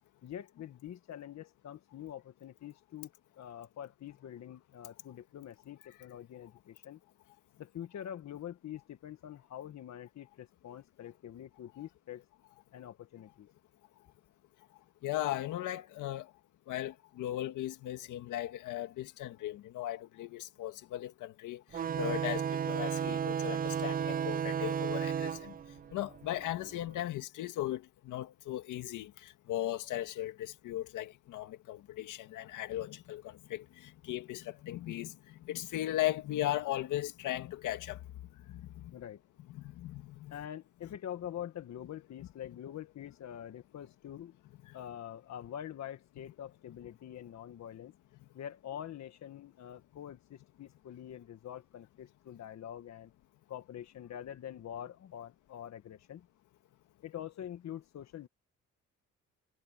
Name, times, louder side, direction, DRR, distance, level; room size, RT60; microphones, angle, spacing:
voice 1, 0.2-3.1 3.4-7.0 7.6-12.2 12.7-13.5 38.9-39.2 40.3-44.4 44.7-47.9 48.3-53.1 53.5-56.3 57.0-58.3, left 10 dB, 65° left, 1.6 m, -45 dB
voice 2, 15.0-16.3 16.7-21.6 22.0-25.5 25.9-33.6 34.0-35.2 35.4-38.0 38.5-38.6 39.5-40.3, left 14 dB, 85° left, 2.1 m, -37 dB
sound 1, 21.7-26.9, right 8 dB, 30° right, 0.4 m, -34 dB
cardioid pair, 90°, 30 cm